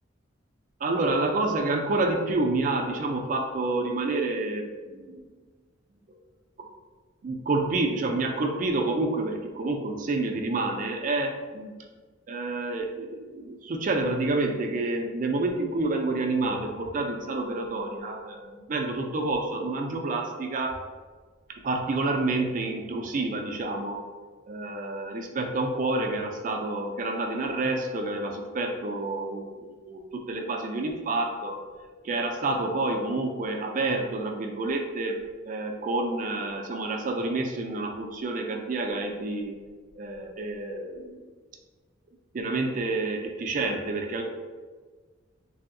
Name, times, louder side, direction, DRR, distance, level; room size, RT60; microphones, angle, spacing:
voice 1, 0.8-5.2 6.6-6.7 7.2-11.7 12.3-20.8 21.6-24.0 24.5-31.6 32.0-39.5 40.0-41.2 42.3-44.2, right 2 dB, 45° right, 3 dB, 0.3 m, -28 dB
3.2 x 2.7 x 2.5 m, 1.4 s
head